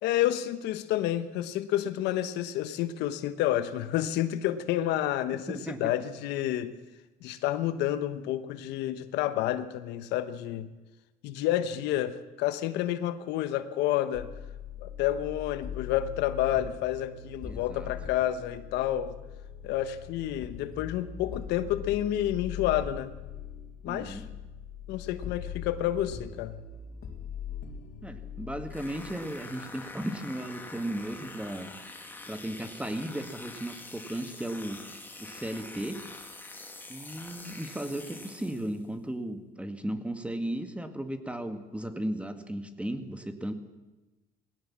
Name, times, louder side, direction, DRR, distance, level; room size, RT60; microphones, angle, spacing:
voice 1, 0.0-6.7 7.2-10.7 11.2-14.3 14.8-19.2 19.6-23.1 23.8-24.2 24.9-26.5, left 12 dB, 90° left, 12 dB, 1.2 m, -29 dB
voice 2, 5.5-6.0 17.4-17.9 23.9-24.3 28.0-31.7 32.3-34.8 35.2-36.0 36.9-43.5, right 1 dB, 5° right, 8 dB, 2.0 m, -35 dB
happy thoughts beat, 14.1-29.0, left 8 dB, 65° left, 3.5 m, -41 dB
sound 1, 28.7-38.8, left 2 dB, 10° left, 2.4 m, -45 dB
20.5 x 17.5 x 7.5 m, 1.1 s
cardioid pair, 110°, 17 cm